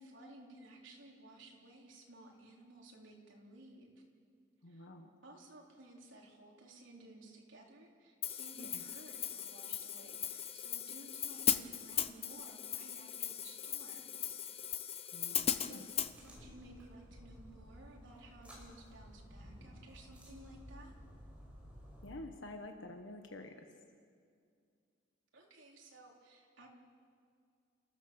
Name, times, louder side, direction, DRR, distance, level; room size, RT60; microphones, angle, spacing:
voice 1, 0.0-3.9 4.7-4.9 5.2-14.2 15.6-15.8 16.2-20.9 25.3-26.7, right 1 dB, 70° right, -1 dB, 3.8 m, -56 dB
voice 2, 4.6-5.1 8.6-8.9 15.1-15.8 22.0-23.7, left 2 dB, 70° left, 5 dB, 1.3 m, -49 dB
Hi-hat, 8.2-16.1, left 9 dB, 30° left, 0.8 m, -38 dB
sound 1, 16.1-22.1, equal, 5° right, 5.8 m, -54 dB
29.5 x 15.5 x 7.1 m, 2.3 s
head